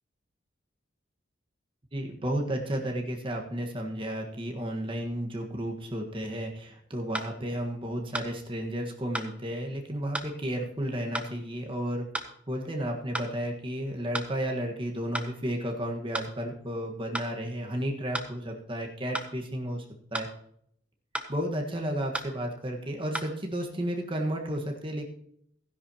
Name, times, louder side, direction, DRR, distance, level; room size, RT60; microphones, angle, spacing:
voice 1, 1.9-12.1 12.5-19.8 20.1-20.3 21.3-25.0, equal, 25° right, 1 dB, 1.6 m, -32 dB
sound 1, 7.1-7.3 8.1-8.3 9.1-9.3 10.1-10.3 11.1-11.3 12.1-12.3 13.1-13.3 14.1-14.3 15.1-15.3 16.1-16.3 17.1-17.3 18.1-18.3 19.1-19.3 20.1-20.3 21.1-21.3 22.1-22.3 23.1-23.3, right 1 dB, 5° right, 0.8 m, -34 dB
15.5 x 10.5 x 3.0 m, 0.68 s
head